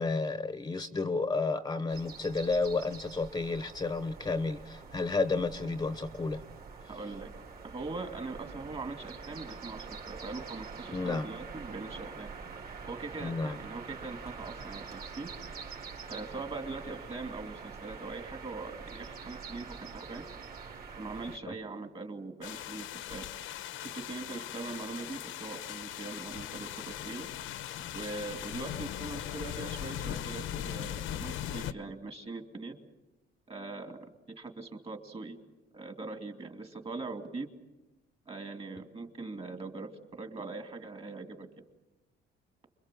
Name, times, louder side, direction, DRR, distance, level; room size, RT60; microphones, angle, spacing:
voice 1, 0.0-6.4 10.9-11.3 13.2-13.6 21.5-21.6, left 3 dB, 20° left, 11 dB, 1.0 m, -31 dB
sound 1, 1.9-21.4, right 5 dB, 50° right, 4.0 m, -45 dB
voice 2, 6.9-7.3 7.6-12.3 12.9-15.3 16.1-20.3 21.0-23.3 23.9-27.3 27.9-32.8 33.5-34.0 34.4-35.4 35.7-37.5 38.3-41.5, right 3 dB, 30° right, 6 dB, 2.6 m, -41 dB
sound 2, 22.4-31.7, left 11 dB, 80° left, 1.1 m, -39 dB
30.0 x 22.5 x 7.7 m, 1.1 s
cardioid pair, 125°, 20 cm